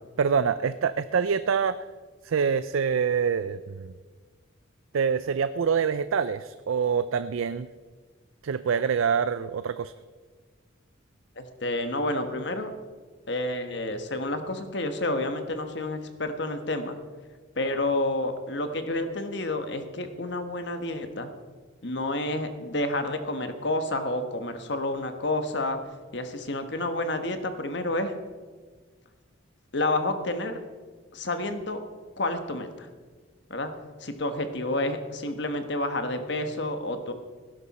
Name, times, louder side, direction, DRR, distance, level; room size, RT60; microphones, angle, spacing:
voice 1, 0.2-1.8 2.2-3.9 4.9-7.7 8.4-9.9, right 6 dB, 85° right, 13 dB, 0.4 m, -25 dB
voice 2, 11.4-12.7 13.3-17.0 17.6-21.3 21.8-25.8 26.1-28.1 29.7-30.6 31.1-31.8 32.2-32.9 33.5-33.7 34.0-37.1, left 2 dB, 60° left, 8 dB, 1.3 m, -29 dB
18.0 x 11.0 x 4.2 m, 1.4 s
head